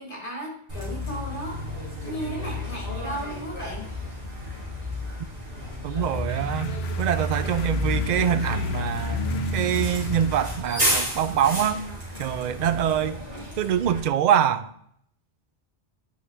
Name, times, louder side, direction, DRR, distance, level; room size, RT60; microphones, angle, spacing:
voice 1, 0.0-3.9, right 1 dB, 45° left, -1 dB, 2.2 m, -35 dB
Bus, 0.7-14.0, left 1 dB, 35° right, 3.1 m, -30 dB
sound 1, 5.6-10.6, left 6 dB, 65° left, 0.9 m, -44 dB
voice 2, 5.8-11.8 12.2-13.2 13.6-14.7, right 9 dB, 60° right, 13 dB, 0.4 m, -24 dB
9.6 x 5.1 x 3.3 m, 0.69 s
omnidirectional pair, 1.2 m